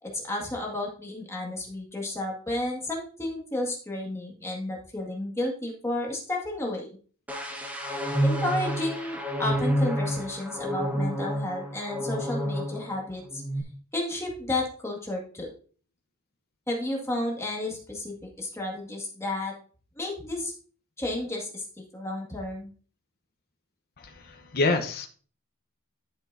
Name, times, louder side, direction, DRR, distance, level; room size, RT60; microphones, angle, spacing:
voice 1, 0.0-6.9 8.2-13.4 13.9-15.5 16.7-19.5 20.0-20.5 21.0-22.7, left 1 dB, 15° left, -2 dB, 2.0 m, -32 dB
sound 1, 7.3-13.0 13.3-13.6, equal, 5° right, 1.3 m, -29 dB
voice 2, 24.0-25.1, left 3 dB, 45° left, 4 dB, 0.9 m, -27 dB
10.5 x 6.2 x 2.7 m, 0.42 s
head